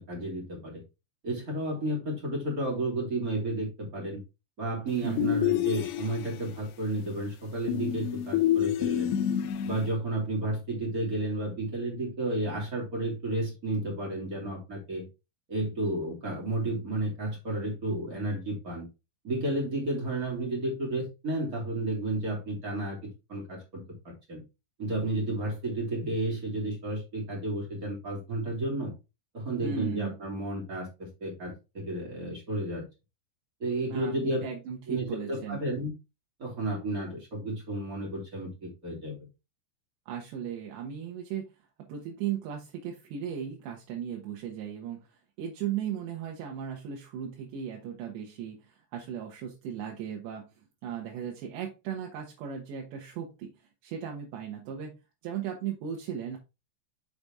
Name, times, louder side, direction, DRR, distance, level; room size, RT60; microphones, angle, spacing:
voice 1, 0.1-0.8 1.2-4.2 4.6-9.2 9.6-15.1 15.5-18.9 19.2-24.4 24.8-28.9 29.3-32.8 33.6-34.4 34.9-35.9 36.4-39.1, right 1 dB, 25° right, -2 dB, 2.5 m, -32 dB
sound 1, 5.2-6.4 7.7-9.9, left 11 dB, 80° left, 2.6 m, -28 dB
voice 2, 29.6-30.2 33.9-35.6 40.1-41.5 41.9-50.5 50.8-53.5 53.8-55.0 55.2-56.4, right 8 dB, 70° right, 0 dB, 3.0 m, -36 dB
6.7 x 6.0 x 3.5 m, 0.26 s
omnidirectional pair, 5.9 m